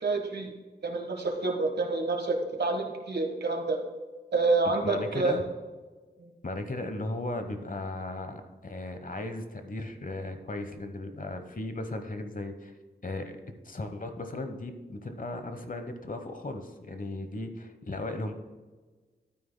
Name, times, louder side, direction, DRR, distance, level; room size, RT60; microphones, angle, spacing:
voice 1, 0.0-0.5 0.8-3.8 4.3-5.4 6.2-6.3, right 3 dB, 65° right, 4 dB, 1.4 m, -28 dB
voice 2, 4.6-5.4 6.4-12.7 13.0-13.3 13.6-18.3, left 2 dB, 45° left, 7 dB, 1.1 m, -36 dB
12.5 x 9.2 x 2.2 m, 1.3 s
wide cardioid pair, 60°, 19 cm